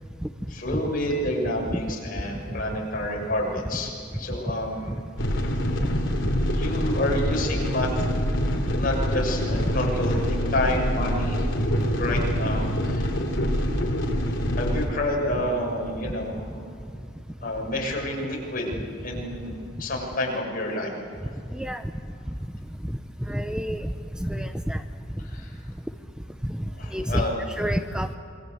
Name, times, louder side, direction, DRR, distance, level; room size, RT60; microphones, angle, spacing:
voice 1, 0.5-4.9 6.5-7.9 8.8-11.5 11.7-13.1 14.5-16.5 17.4-20.9 21.2-21.3 25.3-25.6 26.8-27.3, left 1 dB, 45° left, -1 dB, 7.0 m, -29 dB
sound 1, 5.2-14.9, equal, 65° left, 3.8 m, -25 dB
voice 2, 21.5-21.8 23.3-23.9 24.2-24.8 26.5-26.6 26.9-28.1, equal, 5° right, 7 dB, 0.8 m, -28 dB
27.0 x 23.5 x 8.1 m, 2.3 s
head